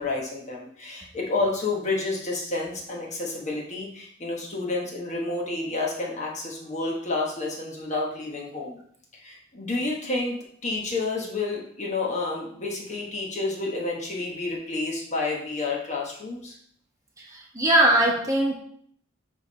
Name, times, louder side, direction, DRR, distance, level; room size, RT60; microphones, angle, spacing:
voice 1, 0.0-8.8 9.1-16.6, left 3 dB, 35° left, -2 dB, 1.1 m, -30 dB
voice 2, 17.2-18.5, right 1 dB, 15° right, -2 dB, 1.1 m, -21 dB
7.3 x 3.3 x 4.2 m, 0.63 s
head